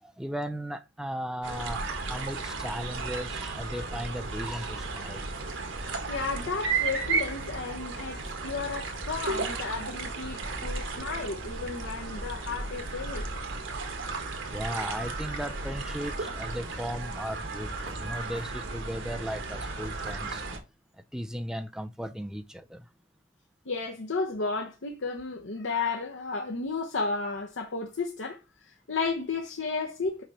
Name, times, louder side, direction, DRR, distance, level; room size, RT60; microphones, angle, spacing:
voice 1, 0.0-5.3 14.4-20.4 21.1-22.9, equal, 5° right, 0.5 m, -36 dB
sound 1, 1.4-20.6, right 3 dB, 90° right, 1.6 m, -34 dB
voice 2, 6.1-13.3 23.7-30.2, left 4 dB, 85° left, 1.0 m, -33 dB
Knock, 15.5-22.0, right 3 dB, 75° right, 1.1 m, -50 dB
5.9 x 4.9 x 4.2 m
head